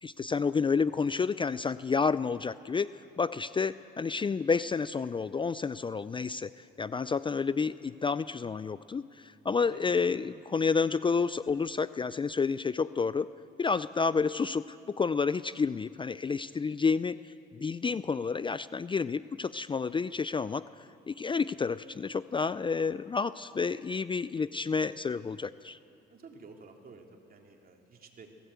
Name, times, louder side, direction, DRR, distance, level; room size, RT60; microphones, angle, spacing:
voice 1, 0.0-6.5 6.8-13.3 13.6-20.6 21.1-25.8, left 5 dB, 25° left, 15 dB, 0.4 m, -30 dB
voice 2, 9.6-9.9 26.1-28.3, right 4 dB, 50° right, 2 dB, 2.9 m, -52 dB
20.0 x 16.0 x 8.3 m, 2.6 s
cardioid pair, 90°, 20 cm